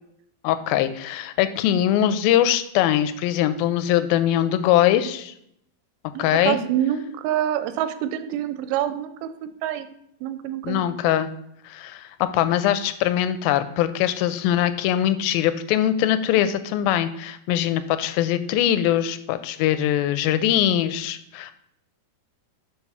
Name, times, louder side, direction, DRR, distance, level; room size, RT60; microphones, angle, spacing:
voice 1, 0.4-5.3 6.2-6.6 10.6-11.3 11.7-21.5, left 11 dB, 85° left, 12 dB, 2.3 m, -22 dB
voice 2, 6.1-9.3 9.6-9.9 10.2-10.9, right 11 dB, 85° right, 11 dB, 2.5 m, -26 dB
5.8 x 4.7 x 5.5 m, 0.74 s
omnidirectional pair, 4.3 m